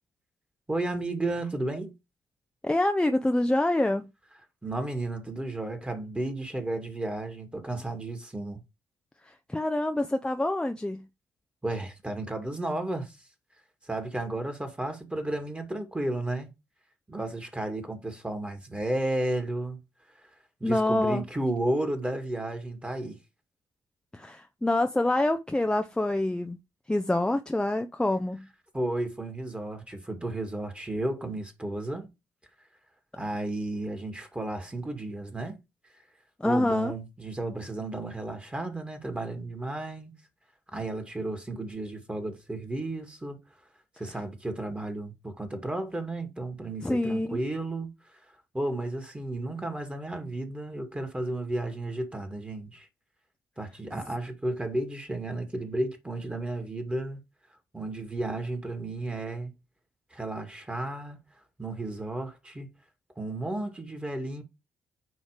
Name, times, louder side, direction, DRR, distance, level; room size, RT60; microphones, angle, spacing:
voice 1, 0.7-1.9 4.6-8.6 11.6-13.2 13.8-16.5 17.1-19.8 20.6-23.2 28.7-32.1 33.1-35.6 36.4-40.1 40.7-43.4 44.0-48.2 48.5-52.9 53.6-57.2 57.7-59.5 60.1-61.2 61.6-62.7 63.2-64.4, right 2 dB, 15° right, 2.3 m, -33 dB
voice 2, 2.6-4.1 9.5-11.0 20.6-21.2 24.1-26.6 26.9-28.4 36.4-36.9 46.8-47.4, left 1 dB, 10° left, 0.7 m, -26 dB
9.3 x 3.2 x 5.1 m
hypercardioid pair, 45°, 8 cm